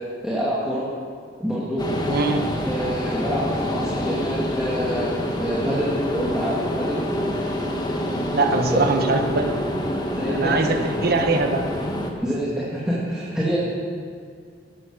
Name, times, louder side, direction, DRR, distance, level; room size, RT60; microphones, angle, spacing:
voice 1, 0.2-0.9 1.4-1.8 2.7-7.0 8.7-8.9 10.2-10.6 12.2-13.6, equal, 5° right, -8 dB, 2.4 m, -26 dB
sound 1, 1.8-12.1, equal, 25° left, 1.6 m, -26 dB
voice 2, 2.1-2.4 8.3-9.6 10.3-11.7, right 3 dB, 60° right, 5 dB, 1.3 m, -22 dB
16.0 x 11.0 x 6.4 m, 2.1 s
head